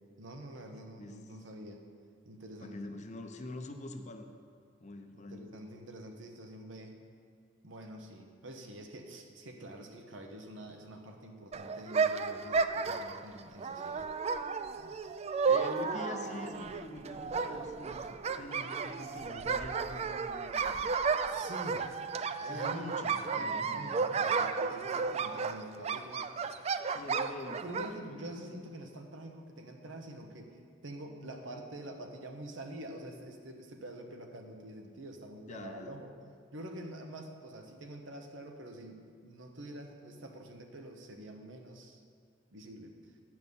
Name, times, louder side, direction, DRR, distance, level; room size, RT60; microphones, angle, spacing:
voice 1, 0.2-1.8 2.3-2.8 5.1-7.0 7.6-14.1 21.3-21.9 22.3-26.2 27.6-36.1 36.5-42.0 42.5-43.0, right 1 dB, 85° right, 3 dB, 1.1 m, -46 dB
voice 2, 2.6-4.3 4.8-5.5 15.4-21.0 22.4-24.0 26.9-27.6 28.0-28.5 35.5-36.0, left 1 dB, 40° left, 6 dB, 0.7 m, -45 dB
sound 1, 11.5-27.9, right 5 dB, 35° right, 0.3 m, -33 dB
9.3 x 6.0 x 7.0 m, 2.1 s
head